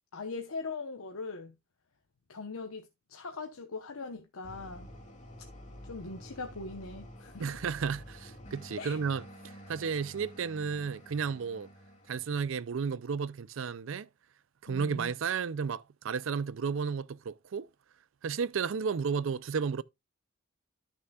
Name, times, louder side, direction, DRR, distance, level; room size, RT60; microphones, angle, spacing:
voice 1, 0.1-1.5 2.3-4.9 5.8-7.5 8.8-9.0 14.7-15.1, left 4 dB, 90° left, 1.0 m, -41 dB
sound 1, 4.4-12.7, equal, 35° left, 2.0 m, -50 dB
voice 2, 7.4-9.2 9.7-11.7 12.1-14.1 14.6-17.7 18.2-19.8, right 6 dB, 65° right, 0.4 m, -33 dB
13.5 x 6.3 x 2.3 m
head